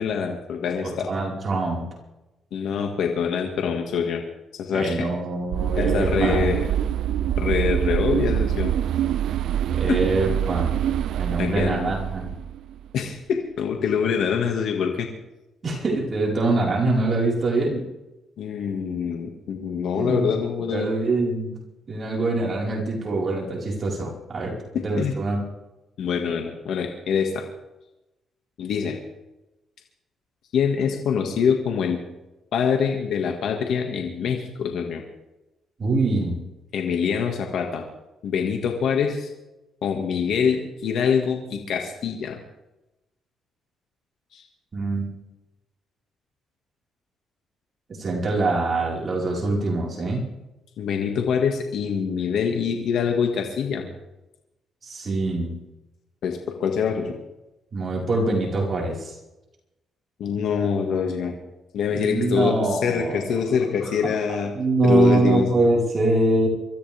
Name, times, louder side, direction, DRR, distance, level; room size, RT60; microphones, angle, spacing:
voice 1, 0.0-1.1 2.5-4.2 4.5-5.1 5.8-6.7 7.4-8.7 9.9-10.0 11.4-11.9 12.9-15.1 18.4-20.9 24.7-25.1 26.0-27.5 28.6-29.0 30.5-32.0 32.5-35.0 36.7-37.9 38.2-39.3 39.8-42.4 44.3-44.4 50.8-53.9 56.2-57.2 60.2-61.3 61.7-64.5 64.8-65.5, left 6 dB, 70° left, 3 dB, 2.0 m, -25 dB
voice 2, 0.8-1.8 4.7-6.5 9.7-10.7 11.2-12.3 15.6-17.8 19.9-20.3 20.6-21.6 21.9-25.4 35.8-36.4 44.7-45.1 47.9-50.3 54.8-55.5 57.7-59.1 61.9-63.2 63.8-64.1 64.5-66.5, right 2 dB, 40° right, -3 dB, 4.9 m, -24 dB
sound 1, 5.5-12.9, right 10 dB, 75° right, 0.6 m, -25 dB
25.0 x 14.0 x 3.6 m, 0.96 s
cardioid pair, 90°, 0 cm